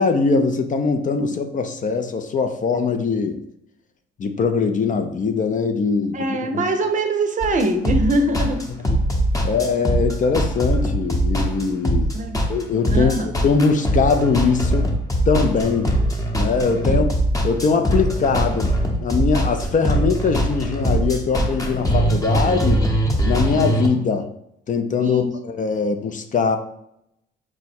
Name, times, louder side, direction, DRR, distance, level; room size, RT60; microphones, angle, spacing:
voice 1, 0.0-3.4 4.2-6.6 9.4-12.1 12.5-14.9 15.3-15.9 16.3-17.1 17.4-18.7 19.0-22.8 23.2-24.3 24.7-26.6, left 5 dB, 40° left, 7 dB, 0.5 m, -21 dB
voice 2, 6.1-8.7 12.1-12.4 12.9-13.3 16.8-17.0 25.0-25.2, right 1 dB, 40° right, 5 dB, 0.6 m, -22 dB
Bad Happy Porn song - you know it you have heard it before., 7.4-23.9, right 1 dB, 15° left, 0.9 m, -21 dB
4.7 x 2.1 x 4.2 m, 0.77 s
cardioid pair, 90°, 20 cm